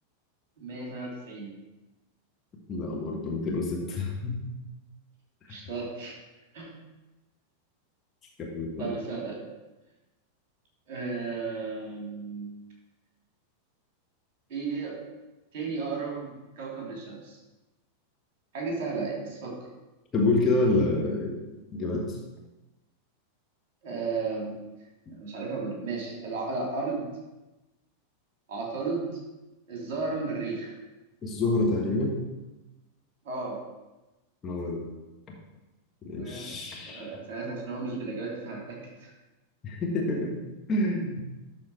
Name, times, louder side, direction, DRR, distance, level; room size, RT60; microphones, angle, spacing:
voice 1, 0.6-1.5 5.5-6.2 6.5-6.7 8.8-9.4 10.9-12.5 14.5-15.0 15.5-17.4 18.5-19.6 23.8-24.6 25.1-27.1 28.5-29.2 29.7-30.7 33.2-33.6 36.2-36.5 36.8-39.1, right 4 dB, 45° right, -2 dB, 2.9 m, -34 dB
voice 2, 2.7-4.5 8.4-8.9 20.1-21.4 21.7-22.2 31.2-32.2 34.4-34.8 36.0-37.0 39.6-40.4 40.7-41.2, left 2 dB, 25° left, -2 dB, 1.6 m, -27 dB
12.0 x 4.2 x 4.6 m, 1.1 s
figure-of-eight pair, 90°, 0 cm